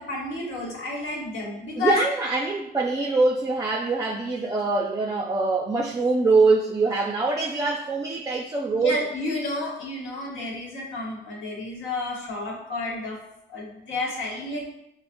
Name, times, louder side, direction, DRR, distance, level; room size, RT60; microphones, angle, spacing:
voice 1, 0.0-2.0 8.7-13.2 13.5-14.6, left 2 dB, 80° left, -2 dB, 1.1 m, -30 dB
voice 2, 1.8-9.0, right 3 dB, 15° right, 2 dB, 0.3 m, -23 dB
5.5 x 2.0 x 2.5 m, 0.80 s
cardioid pair, 90°, 20 cm